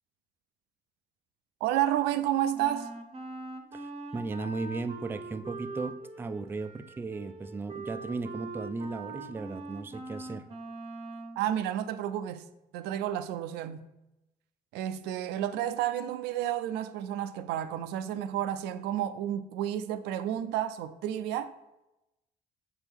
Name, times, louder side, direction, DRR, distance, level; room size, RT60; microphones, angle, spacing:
voice 1, 1.6-2.9 11.4-12.4 12.7-13.8 14.7-21.5, right 11 dB, 90° right, 0.4 m, -31 dB
Wind instrument woodwind instrument, 2.5-11.4, right 3 dB, 35° right, 0.7 m, -42 dB
voice 2, 3.7-10.4, right 3 dB, 15° right, 0.3 m, -36 dB
6.8 x 4.5 x 3.5 m
cardioid pair, 110°, 17 cm